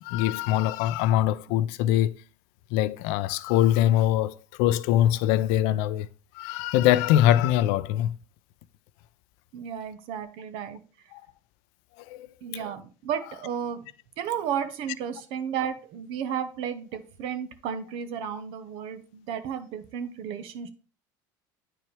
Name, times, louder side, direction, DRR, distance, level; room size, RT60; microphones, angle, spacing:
voice 1, 0.0-2.1 2.7-6.1 6.3-8.2 11.1-11.2 12.1-12.3, left 12 dB, 70° left, 0.4 m, -23 dB
voice 2, 9.5-10.8 12.4-13.8 14.2-20.7, right 8 dB, 65° right, 0.9 m, -33 dB
9.0 x 4.6 x 3.2 m
supercardioid pair, 85°, 10 cm